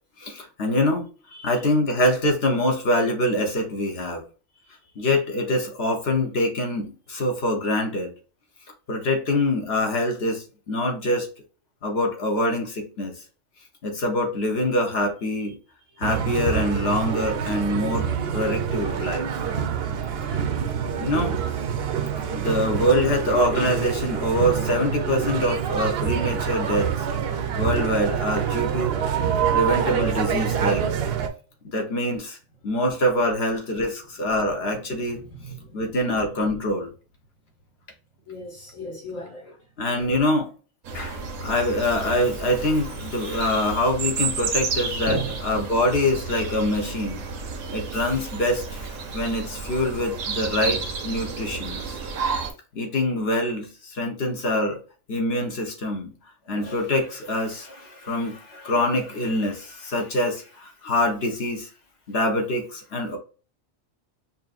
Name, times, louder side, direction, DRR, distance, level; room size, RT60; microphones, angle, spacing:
voice 1, 0.2-1.1 1.4-4.2 5.0-8.1 8.9-11.3 11.8-13.1 13.8-15.5 16.0-18.1 18.3-19.3 21.0-21.4 22.3-27.1 27.5-28.9 29.5-30.8 31.6-32.4 32.6-35.2 35.7-36.9 39.8-40.5 40.9-47.2 47.7-52.0 52.7-54.8 55.1-56.1 56.5-61.7 62.1-63.2, left 1 dB, 55° left, 1.1 m, -24 dB
voice 2, 1.3-1.6 4.5-5.0 15.9-16.2 17.6-17.7 34.7-34.8 35.1-35.8 38.3-39.5 45.1-45.3, right 1 dB, 90° left, 1.7 m, -36 dB
sound 1, 16.0-31.3, right 8 dB, 60° right, 0.7 m, -26 dB
sound 2, 40.8-52.5, right 5 dB, 85° right, 1.2 m, -31 dB
5.5 x 2.6 x 2.4 m
omnidirectional pair, 1.3 m